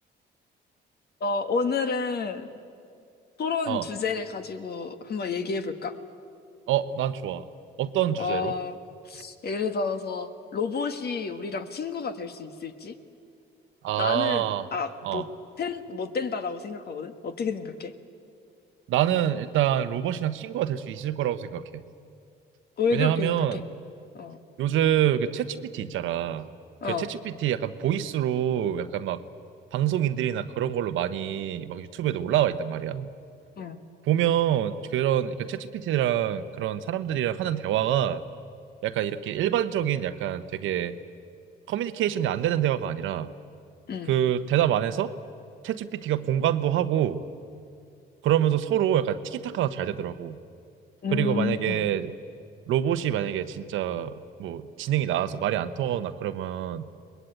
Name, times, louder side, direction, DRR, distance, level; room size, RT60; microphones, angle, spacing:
voice 1, 1.2-2.5 3.4-5.9 8.2-8.8 9.0-12.9 14.0-15.2 15.6-17.9 22.8-23.6 24.1-24.4 26.8-27.1 33.6-33.8 43.9-44.1 51.0-51.9, left 5 dB, 55° left, 8 dB, 1.7 m, -30 dB
voice 2, 6.7-7.4 7.8-8.5 13.8-14.7 15.0-15.2 18.9-21.6 22.9-23.7 24.6-26.5 26.9-29.2 29.7-33.1 34.0-38.2 38.8-40.9 41.7-43.3 44.1-45.1 45.6-47.2 48.2-50.4 51.1-52.1 52.7-54.1 54.4-56.9, right 11 dB, 85° right, 11 dB, 1.0 m, -26 dB
23.0 x 20.5 x 9.0 m, 2.4 s
cardioid pair, 90°, 20 cm